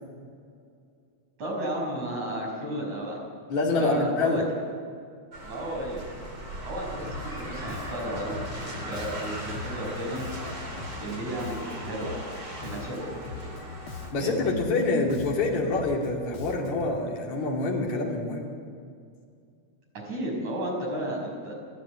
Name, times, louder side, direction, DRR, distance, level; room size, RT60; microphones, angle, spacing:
voice 1, 1.4-3.2 3.8-4.4 5.4-6.1 6.6-10.3 11.0-12.2 12.6-13.5 14.2-14.5 19.9-21.5, right 1 dB, 75° right, -1 dB, 7.3 m, -33 dB
voice 2, 3.5-4.4 14.1-18.5, left 3 dB, 75° left, -2 dB, 4.0 m, -26 dB
sound 1, 5.3-14.1, right 1 dB, 35° right, 4.6 m, -38 dB
Bass guitar, 7.1-7.4 7.7-12.4 12.6-17.0, left 4 dB, 55° left, 2.0 m, -41 dB
29.5 x 15.5 x 8.5 m, 2.3 s
omnidirectional pair, 3.3 m